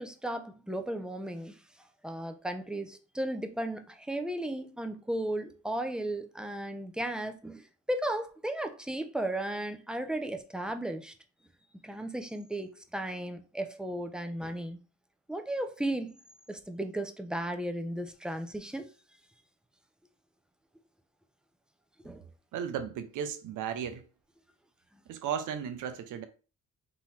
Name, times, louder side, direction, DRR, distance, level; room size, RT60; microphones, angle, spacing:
voice 1, 0.0-1.6 2.0-11.1 11.8-14.8 15.3-16.2 16.5-18.9 22.0-22.3, right 1 dB, 5° right, 0.7 m, -35 dB
voice 2, 22.5-24.1 25.1-26.3, right 8 dB, 85° right, 0.7 m, -35 dB
3.9 x 3.0 x 4.2 m
cardioid pair, 90°, 30 cm